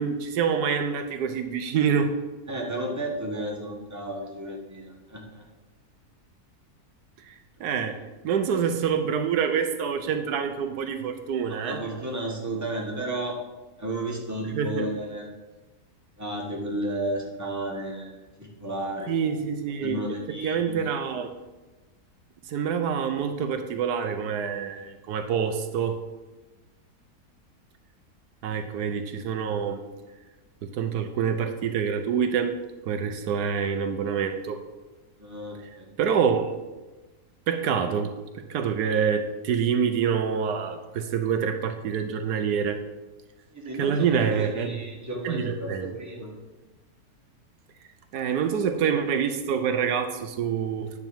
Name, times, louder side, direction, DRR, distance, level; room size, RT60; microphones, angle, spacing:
voice 1, 0.0-2.1 7.6-8.0 8.2-11.8 14.5-14.9 19.1-20.0 20.4-21.3 22.5-26.0 28.4-29.8 30.6-32.5 32.8-34.6 36.0-36.4 37.5-38.1 38.5-42.8 43.8-44.8 45.2-45.9 48.1-50.9, right 7 dB, 85° right, 7 dB, 1.3 m, -26 dB
voice 2, 2.5-5.4 7.6-8.0 11.5-13.3 13.8-15.3 16.2-19.2 19.8-20.9 35.2-35.8 43.5-46.3, right 1 dB, 10° right, -2 dB, 1.5 m, -33 dB
9.7 x 4.0 x 7.3 m, 1.2 s
omnidirectional pair, 1.6 m